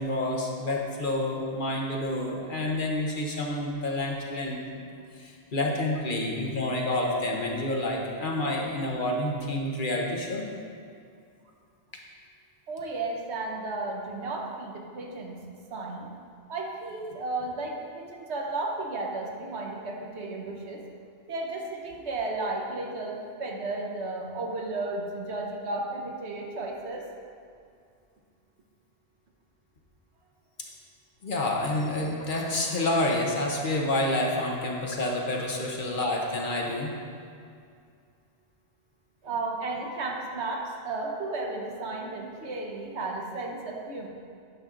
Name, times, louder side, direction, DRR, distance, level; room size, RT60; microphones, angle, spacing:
voice 1, 0.0-4.9 5.2-10.5 31.2-36.9, left 1 dB, 50° left, -1 dB, 1.1 m, -28 dB
voice 2, 12.7-15.4 15.7-16.1 16.5-20.8 21.3-27.1 39.2-44.1, right 2 dB, 75° right, 1 dB, 1.2 m, -33 dB
9.6 x 6.2 x 3.8 m, 2.3 s
omnidirectional pair, 1.1 m